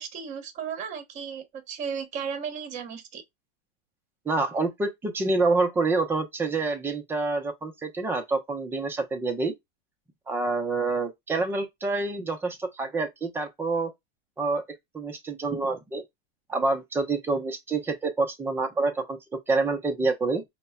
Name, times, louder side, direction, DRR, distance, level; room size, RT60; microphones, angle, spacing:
voice 1, 0.0-3.2, right 7 dB, 25° right, 0.9 m, -35 dB
voice 2, 4.3-9.5 10.3-13.9 14.4-14.6 14.9-16.0 16.5-19.2 19.5-20.4, right 3 dB, 5° right, 0.5 m, -27 dB
5.2 x 2.1 x 2.2 m
supercardioid pair, 155°, 31 cm